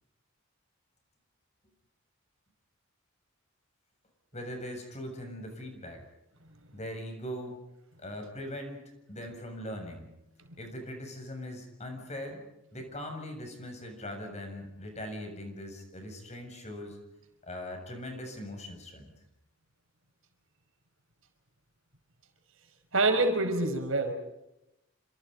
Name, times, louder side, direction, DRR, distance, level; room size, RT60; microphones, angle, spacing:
voice 1, 4.3-6.0 6.7-7.6 8.0-8.8 9.1-10.1 10.6-12.4 12.7-17.0 17.4-19.1, left 1 dB, 30° left, 4 dB, 7.3 m, -40 dB
voice 2, 22.9-24.1, right 2 dB, 70° right, 5 dB, 5.3 m, -26 dB
29.0 x 26.5 x 5.4 m, 0.87 s
head